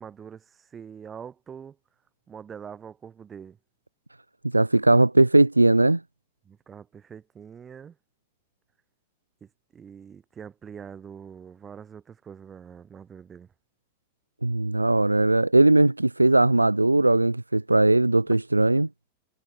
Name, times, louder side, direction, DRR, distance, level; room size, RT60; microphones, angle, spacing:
voice 1, 0.0-1.8 2.3-3.6 6.4-8.0 9.4-13.5, right 7 dB, 20° right, 2.8 m, -44 dB
voice 2, 4.5-6.0 14.4-18.9, right 2 dB, 85° right, 0.4 m, -19 dB
figure-of-eight pair, 90°, 0 cm